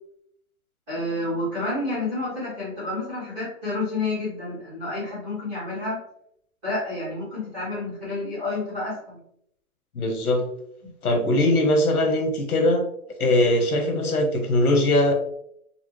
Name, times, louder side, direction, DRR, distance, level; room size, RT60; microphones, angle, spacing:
voice 1, 0.9-6.0 6.6-9.2 10.8-10.9, left 2 dB, 5° right, -11 dB, 0.8 m, -29 dB
voice 2, 9.9-10.4 11.0-12.8 13.2-15.1, left 1 dB, 85° left, 3 dB, 1.0 m, -21 dB
4.2 x 2.1 x 3.0 m, 0.72 s
hypercardioid pair, 170°, 43 cm